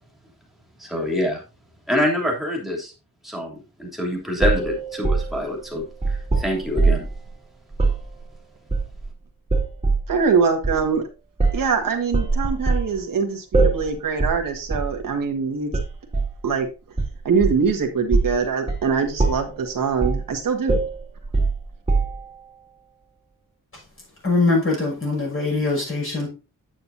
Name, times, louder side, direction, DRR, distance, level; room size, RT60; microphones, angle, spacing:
voice 1, 0.8-1.4 1.9-2.9 3.2-7.1, left 1 dB, ahead, 3.1 m, -26 dB
sound 1, 4.4-7.2 7.7-8.0 8.7-9.1 9.5-10.1 10.6-10.8 11.4-11.7 12.1-12.9 13.5-13.9 14.2-14.4 14.7-14.9 15.7-16.4 17.0-17.7 18.1-18.4 18.7-18.9 19.2-19.6 20.0-20.3 20.7-22.4, right 3 dB, 20° right, 2.3 m, -22 dB
voice 2, 10.1-11.0 11.5-15.7 16.4-16.7 17.2-20.8, right 5 dB, 80° right, 1.6 m, -23 dB
voice 3, 24.2-26.3, left 3 dB, 40° left, 5.9 m, -22 dB
9.2 x 8.8 x 2.7 m
wide cardioid pair, 160°, 33 cm